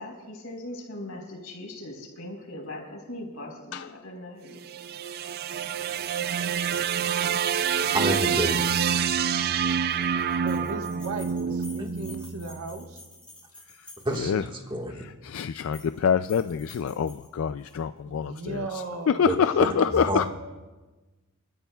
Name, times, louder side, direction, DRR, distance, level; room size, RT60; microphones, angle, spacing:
voice 1, 0.0-4.6 11.5-11.6, left 1 dB, 85° left, 0 dB, 4.3 m, -40 dB
sound 1, 4.5-12.8, right 7 dB, 45° right, 0.4 m, -27 dB
voice 2, 7.9-8.6 11.8-11.9 14.1-15.0 19.2-20.2, right 1 dB, 25° right, 1 dB, 1.6 m, -29 dB
sound 2, 8.3-14.4 15.5-16.0 16.2-17.8, left 2 dB, 5° left, 6.0 m, -50 dB
voice 3, 10.4-13.0 18.1-20.2, right 3 dB, 90° right, 4 dB, 1.4 m, -37 dB
voice 4, 15.3-18.6 19.2-20.2, left 7 dB, 70° left, 11 dB, 0.4 m, -25 dB
29.5 x 13.5 x 2.3 m, 1.2 s
head